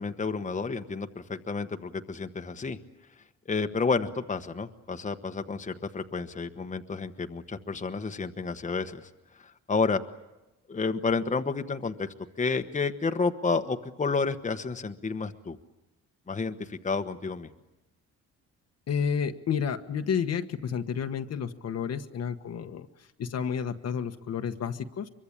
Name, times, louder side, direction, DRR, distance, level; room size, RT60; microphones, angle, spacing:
voice 1, 0.0-2.8 3.5-9.1 9.7-10.0 10.7-15.6 16.3-17.5, left 4 dB, 25° left, 7 dB, 1.2 m, -30 dB
voice 2, 18.9-25.1, left 7 dB, 55° left, 7 dB, 1.3 m, -31 dB
24.0 x 23.5 x 8.8 m, 1.0 s
cardioid pair, 90°, 30 cm